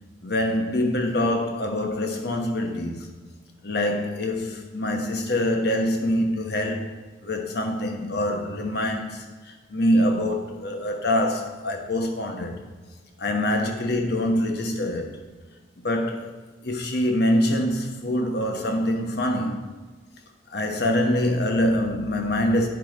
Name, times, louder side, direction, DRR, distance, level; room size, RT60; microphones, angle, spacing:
voice 1, 0.2-3.1 3.6-6.9 7.2-12.6 13.2-15.1 15.8-16.3 16.6-19.6 20.5-22.7, left 1 dB, 60° left, 3 dB, 1.2 m, -25 dB
9.7 x 4.6 x 5.2 m, 1.3 s
head